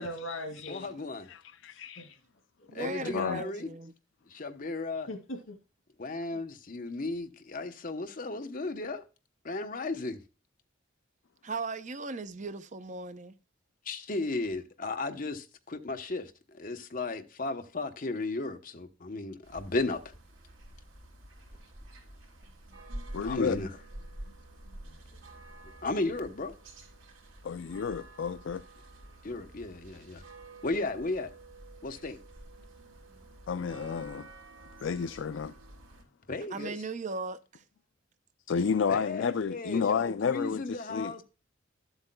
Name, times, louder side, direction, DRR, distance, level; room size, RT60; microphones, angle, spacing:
voice 1, 0.0-1.0 1.7-2.1 2.6-2.7 5.1-5.6, left 1 dB, 85° left, 2.5 m, -40 dB
voice 2, 0.7-1.3 2.7-3.7 4.3-5.1 6.0-9.0 9.4-10.2 13.8-20.1 23.2-23.7 25.8-26.5 29.2-30.2 30.6-31.3 31.8-32.2 36.3-36.8 38.9-41.2, left 3 dB, 45° left, 0.9 m, -35 dB
voice 3, 1.3-2.2 2.8-3.4 23.1-23.6 27.4-28.6 33.5-34.3 34.8-35.6 38.5-41.1, left 6 dB, 65° left, 0.4 m, -31 dB
voice 4, 2.7-3.9 6.3-6.4 11.4-13.3 36.5-37.6, right 3 dB, 40° right, 0.6 m, -37 dB
sound 1, 19.4-36.0, right 1 dB, 75° right, 3.2 m, -49 dB
13.0 x 8.0 x 2.2 m
head